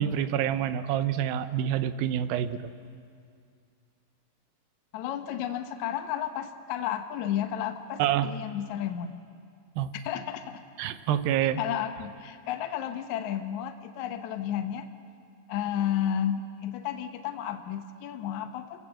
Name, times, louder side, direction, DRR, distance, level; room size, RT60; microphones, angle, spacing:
voice 1, 0.0-2.7 8.0-8.3 9.8-9.9 10.8-11.6, right 10 dB, 85° right, 12 dB, 2.6 m, -27 dB
voice 2, 4.9-9.1 10.0-10.6 11.4-14.9 15.5-18.8, left 10 dB, 65° left, 7 dB, 2.0 m, -32 dB
28.5 x 15.5 x 7.8 m, 2.4 s
omnidirectional pair, 4.1 m